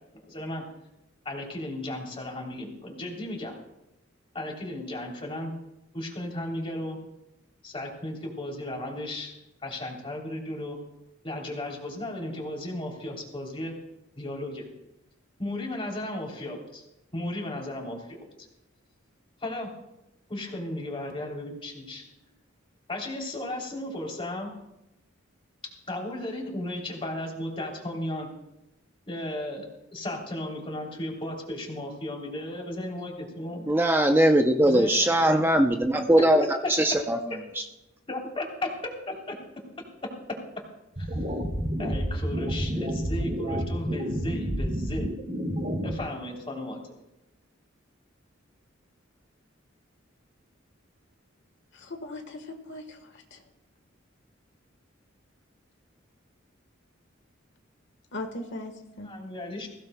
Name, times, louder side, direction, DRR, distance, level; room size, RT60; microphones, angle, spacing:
voice 1, 0.1-0.6 1.2-3.5 4.3-5.5 5.9-7.0 7.6-9.3 9.6-10.8 11.2-13.7 14.2-14.6 15.4-16.8 17.1-18.2 19.4-19.7 20.3-22.0 22.9-24.5 25.9-28.3 29.1-33.7 34.6-35.1 35.4-35.5 35.9-36.2 36.6-36.7 37.3-37.4 38.1-38.4 39.1-39.4 40.0-40.1 41.0-41.3 41.8-45.1 45.8-46.8 59.0-59.7, left 1 dB, 30° left, 0 dB, 3.1 m, -35 dB
voice 2, 33.7-37.2 37.6-37.7, right 1 dB, 10° right, 4 dB, 0.5 m, -21 dB
sound 1, 41.0-46.0, equal, 40° right, 2.2 m, -29 dB
voice 3, 51.7-53.4 58.1-59.1, left 2 dB, 65° left, 4 dB, 1.4 m, -39 dB
21.5 x 16.5 x 2.2 m, 0.88 s
head